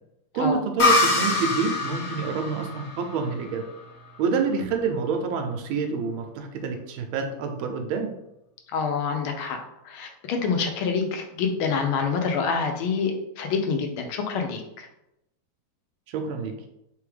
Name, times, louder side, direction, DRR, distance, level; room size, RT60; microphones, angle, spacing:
voice 1, 0.3-3.6 4.2-8.1 16.1-16.5, right 5 dB, 85° right, 5 dB, 1.5 m, -27 dB
sound 1, 0.8-4.3, left 3 dB, 60° left, 0.7 m, -25 dB
voice 2, 8.7-9.6 9.8-14.9, left 5 dB, 85° left, 4 dB, 1.5 m, -27 dB
3.8 x 3.4 x 3.3 m, 0.86 s
omnidirectional pair, 2.2 m